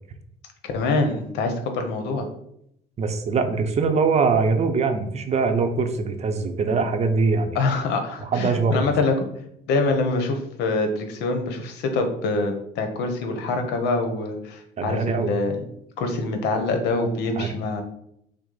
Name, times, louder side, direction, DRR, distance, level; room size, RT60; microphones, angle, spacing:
voice 1, 0.6-2.3 7.5-9.1 9.7-15.6 16.0-17.8, left 3 dB, 85° left, 5 dB, 0.9 m, -25 dB
voice 2, 3.0-7.6 8.2-8.9 14.8-15.3 17.4-17.5, right 4 dB, 40° right, 7 dB, 0.6 m, -22 dB
6.0 x 2.0 x 4.0 m, 0.74 s
cardioid pair, 110°, 17 cm